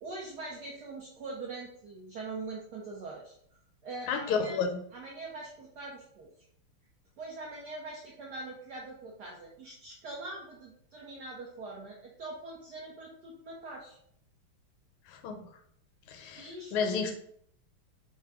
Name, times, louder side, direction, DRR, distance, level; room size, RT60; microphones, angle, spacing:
voice 1, 0.0-4.6 4.9-6.3 7.2-14.0 16.3-17.0, right 2 dB, 80° right, -2 dB, 0.9 m, -43 dB
voice 2, 4.1-4.8 15.1-15.5 16.1-17.2, left 5 dB, 80° left, 5 dB, 1.5 m, -31 dB
3.6 x 2.2 x 3.3 m, 0.67 s
omnidirectional pair, 2.4 m